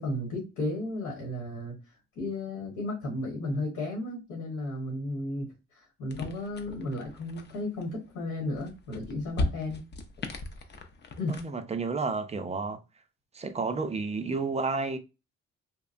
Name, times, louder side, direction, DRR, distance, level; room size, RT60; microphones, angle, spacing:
voice 1, 0.0-1.8 2.1-9.8 11.2-11.4, left 1 dB, 90° left, 1.3 m, -34 dB
sound 1, 6.1-11.5, left 2 dB, 35° left, 0.5 m, -38 dB
voice 2, 11.3-12.8 13.3-15.0, right 4 dB, 20° right, 0.4 m, -31 dB
2.9 x 2.1 x 2.5 m
cardioid pair, 90°, 30 cm